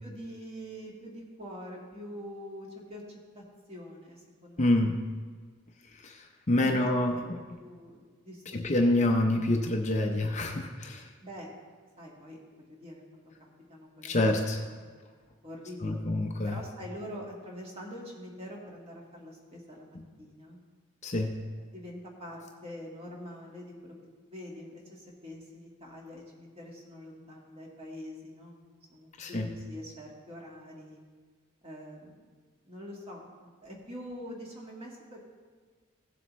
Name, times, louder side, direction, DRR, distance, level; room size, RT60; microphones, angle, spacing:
voice 1, 0.0-3.4 3.7-4.9 6.5-6.9 7.3-8.6 11.2-11.5 12.0-14.4 14.7-14.8 15.4-16.0 16.4-20.6 21.7-24.0 24.2-28.6 28.9-31.0 31.6-32.3 32.6-35.3, equal, 25° right, -2 dB, 1.7 m, -45 dB
voice 2, 4.6-5.0 6.0-7.4 8.5-11.1 14.0-14.6 15.8-16.6 21.0-21.4 29.2-29.5, left 1 dB, 30° left, 3 dB, 0.6 m, -27 dB
16.5 x 7.6 x 3.1 m, 1.5 s
head